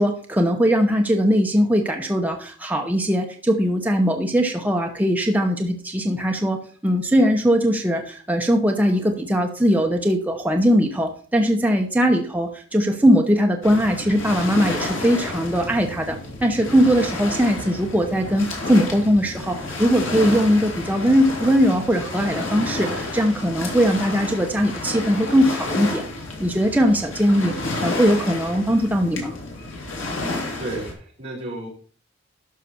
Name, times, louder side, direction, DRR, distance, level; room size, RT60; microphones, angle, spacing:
voice 1, 0.0-26.1 26.4-29.3, equal, 10° right, 2 dB, 0.9 m, -20 dB
Waves surf, 13.6-30.9, left 2 dB, 75° left, 3.0 m, -31 dB
voice 2, 30.6-31.7, right 2 dB, 30° right, -4 dB, 4.5 m, -32 dB
12.0 x 5.9 x 4.3 m, 0.43 s
head